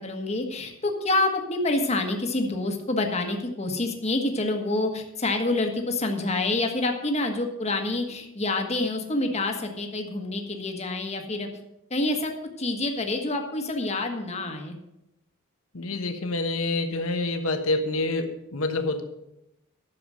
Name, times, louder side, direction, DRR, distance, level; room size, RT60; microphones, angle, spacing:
voice 1, 0.0-11.5 11.9-12.3 12.6-14.8, left 2 dB, 30° left, 4 dB, 1.4 m, -27 dB
voice 2, 15.7-19.0, left 2 dB, 70° left, 6 dB, 1.2 m, -27 dB
11.0 x 7.0 x 6.3 m, 0.88 s
head